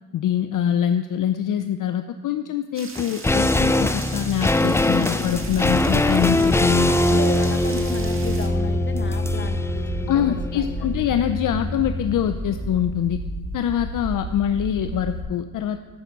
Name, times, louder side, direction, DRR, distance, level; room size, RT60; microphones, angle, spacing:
voice 1, 0.1-7.2 10.1-13.2 13.5-15.8, left 10 dB, 60° left, 9 dB, 0.6 m, -24 dB
sound 1, 2.7-8.5, right 3 dB, 35° right, 1.8 m, -39 dB
sound 2, 3.0-12.3 12.6-12.7, left 1 dB, 10° left, 0.3 m, -22 dB
sound 3, 5.2-15.2, right 1 dB, 70° right, 2.7 m, -32 dB
voice 2, 6.9-10.9, left 3 dB, 30° left, 7 dB, 1.2 m, -34 dB
14.5 x 5.7 x 5.3 m, 1.3 s
cardioid pair, 75°, 37 cm